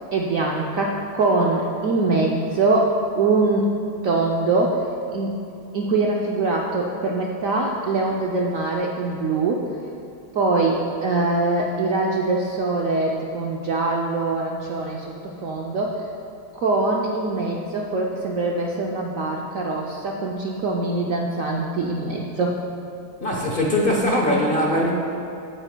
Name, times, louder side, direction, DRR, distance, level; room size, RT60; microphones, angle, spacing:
voice 1, 0.1-3.7 4.0-4.8 5.1-5.4 5.7-9.6 10.3-16.0 16.6-22.6, right 3 dB, 65° right, -1 dB, 0.8 m, -23 dB
voice 2, 23.2-24.9, left 1 dB, 35° left, -2 dB, 0.9 m, -21 dB
15.5 x 8.9 x 2.2 m, 2.6 s
omnidirectional pair, 2.0 m